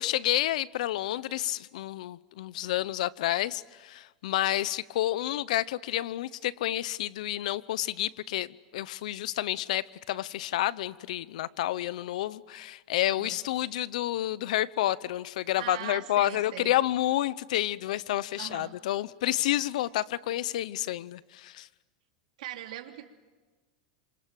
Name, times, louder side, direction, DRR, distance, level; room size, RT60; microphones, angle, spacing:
voice 1, 0.0-21.7, left 14 dB, 75° left, 0.8 m, -30 dB
voice 2, 15.5-16.8 18.4-18.7 22.4-23.1, right 13 dB, 75° right, 2.9 m, -40 dB
29.0 x 27.0 x 7.6 m
supercardioid pair, 160°, 4 cm